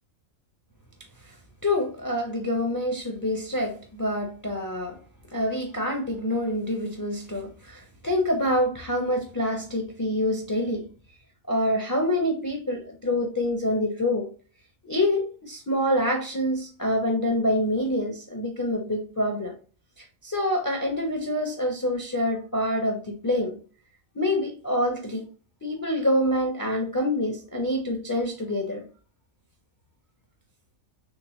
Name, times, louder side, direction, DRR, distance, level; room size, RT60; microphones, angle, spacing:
voice 1, 1.6-5.0 5.3-10.9 11.5-14.3 14.8-19.5 20.0-23.6 24.1-25.3 25.6-28.9, left 1 dB, 25° left, 0.4 m, -26 dB
3.7 x 3.0 x 3.0 m
omnidirectional pair, 1.4 m